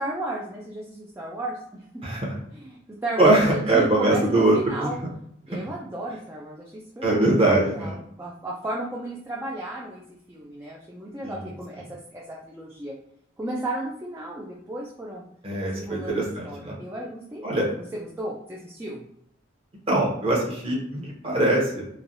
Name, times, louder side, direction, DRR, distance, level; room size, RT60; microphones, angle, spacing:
voice 1, 0.0-1.8 2.5-5.0 5.5-7.2 7.7-10.0 10.3-12.9 13.4-15.2 15.7-19.0, right 1 dB, 10° right, -4 dB, 0.3 m, -34 dB
voice 2, 2.0-2.4 3.2-4.9 7.0-7.9 11.2-11.3 15.4-16.7 17.4-17.7 19.9-21.8, right 2 dB, 30° right, -3 dB, 0.8 m, -22 dB
3.1 x 2.2 x 2.6 m, 0.70 s
head